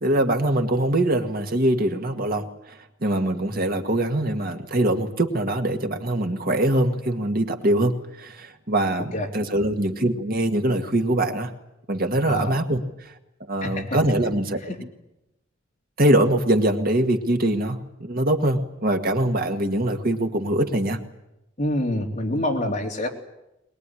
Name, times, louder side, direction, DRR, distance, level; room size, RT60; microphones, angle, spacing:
voice 1, 0.0-11.5 11.9-13.1 13.5-14.6 16.0-21.0, right 1 dB, 50° right, 5 dB, 1.9 m, -23 dB
voice 2, 21.6-23.1, left 1 dB, 40° left, 0 dB, 3.6 m, -26 dB
22.0 x 21.5 x 9.9 m, 0.90 s
head